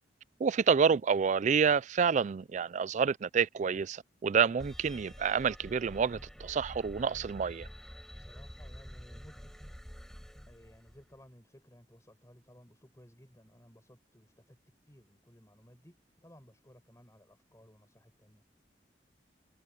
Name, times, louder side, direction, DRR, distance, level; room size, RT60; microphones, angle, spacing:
voice 1, 0.4-7.7, right 6 dB, 45° right, 0.3 m, -28 dB
sound 1, 4.6-11.2, equal, ahead, 5.2 m, -48 dB
voice 2, 8.1-9.9 10.2-14.6 14.9-18.4, equal, 20° left, 8.0 m, -58 dB
head